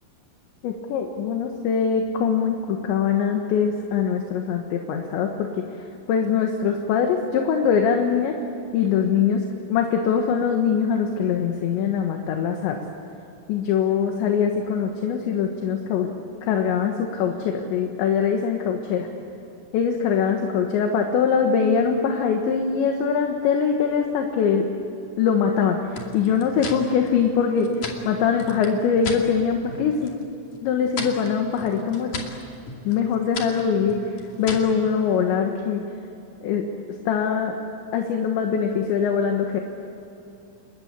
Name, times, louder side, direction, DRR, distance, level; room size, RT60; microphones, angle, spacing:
voice 1, 0.6-8.4 8.7-12.8 13.5-16.1 16.4-19.1 19.7-24.7 25.2-27.7 28.1-30.2 30.6-32.1 32.9-35.8 36.4-36.7 37.1-37.6 37.9-39.6, left 7 dB, 70° left, 3 dB, 3.5 m, -22 dB
sound 1, 25.9-29.3 29.6-30.2 30.5-34.8, left 4 dB, 45° left, 3.3 m, -36 dB
29.5 x 21.5 x 8.9 m, 2.8 s
omnidirectional pair, 5.9 m